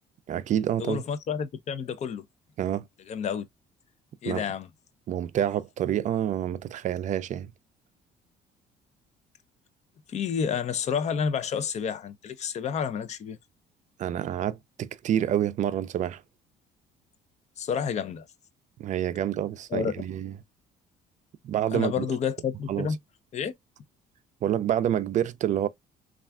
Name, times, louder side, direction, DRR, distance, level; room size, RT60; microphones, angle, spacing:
voice 1, 0.3-1.0 2.6-2.9 4.2-4.4 5.1-7.5 14.0-16.2 18.8-20.3 21.4-22.1 22.7-22.9 24.4-25.7, right 10 dB, 45° right, 0.4 m, -28 dB
voice 2, 0.8-2.2 3.1-3.5 4.2-4.7 10.1-13.4 17.6-18.3 19.7-19.9 21.7-23.0 23.3-23.5, left 7 dB, 40° left, 0.5 m, -30 dB
3.3 x 2.4 x 2.3 m
cardioid pair, 110°, 17 cm